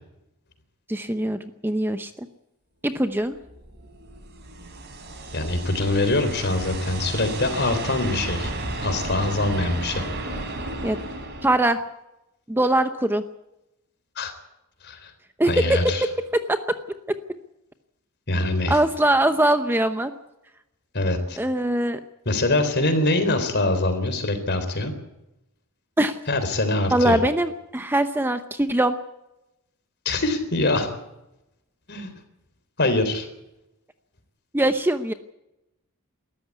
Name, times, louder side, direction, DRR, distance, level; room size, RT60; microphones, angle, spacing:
voice 1, 0.9-2.1 2.8-3.4 10.8-11.0 11.4-11.8 12.5-13.2 15.4-16.1 16.5-16.6 18.7-20.1 21.4-22.0 26.0-26.2 26.9-29.0 34.5-35.1, right 1 dB, 10° right, 9 dB, 0.8 m, -22 dB
sound 1, 3.3-11.6, right 2 dB, 50° right, 4.2 m, -33 dB
voice 2, 5.3-8.5 8.8-10.1 14.2-14.3 14.8-15.1 15.4-16.1 18.3-18.8 20.9-21.4 22.3-24.9 26.3-27.2 30.1-30.9 31.9-32.1 32.8-33.3, left 2 dB, 50° left, 8 dB, 3.8 m, -23 dB
21.0 x 14.0 x 9.6 m, 0.90 s
head